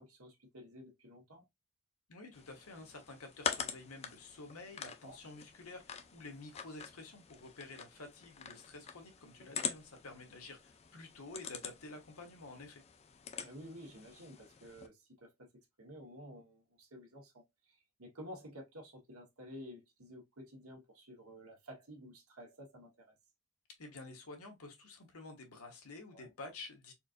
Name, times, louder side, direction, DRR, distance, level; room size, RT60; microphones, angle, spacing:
voice 1, 0.0-1.4 5.0-5.2 9.5-9.7 13.4-15.5 15.8-23.0 26.1-26.3, equal, 80° right, 1.4 m, -52 dB
voice 2, 2.1-12.8 23.8-26.9, left 3 dB, 85° left, 1.2 m, -50 dB
sound 1, 2.3-14.9, left 7 dB, 30° left, 0.3 m, -45 dB
4.3 x 2.5 x 2.5 m
head